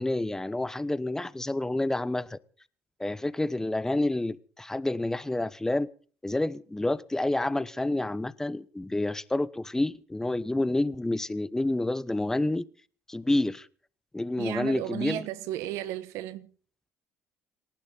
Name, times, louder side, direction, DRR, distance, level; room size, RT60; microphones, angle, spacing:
voice 1, 0.0-2.4 3.0-5.9 6.2-12.6 13.1-13.7 14.1-15.3, left 2 dB, 10° left, 0.9 m, -29 dB
voice 2, 14.3-16.5, right 12 dB, 80° right, 1.4 m, -34 dB
29.0 x 12.0 x 4.0 m
supercardioid pair, 95°, 5 cm